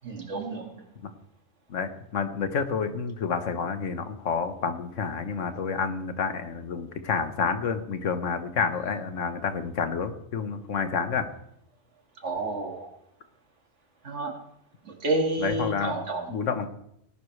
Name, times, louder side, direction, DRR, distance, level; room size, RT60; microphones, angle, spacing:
voice 1, 0.0-0.7 12.2-12.9 14.0-14.3 15.0-16.3, right 2 dB, 70° right, 2 dB, 2.2 m, -29 dB
voice 2, 1.7-11.3 15.4-16.0 16.3-16.7, left 5 dB, 85° left, 9 dB, 1.4 m, -29 dB
18.5 x 11.0 x 3.2 m, 0.77 s
omnidirectional pair, 1.2 m